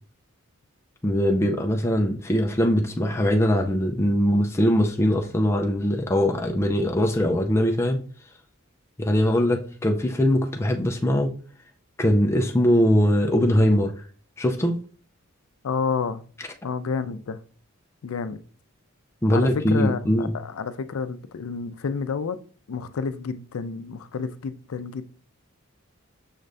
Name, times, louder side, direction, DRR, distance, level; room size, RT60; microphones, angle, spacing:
voice 1, 1.0-8.0 9.0-11.3 12.0-13.9 14.4-14.9 19.2-20.3, equal, 15° left, 0.4 m, -21 dB
voice 2, 15.6-16.2 16.6-17.4 18.0-18.4 19.3-22.4 22.7-25.1, left 5 dB, 85° left, 0.4 m, -30 dB
6.4 x 2.5 x 3.3 m
head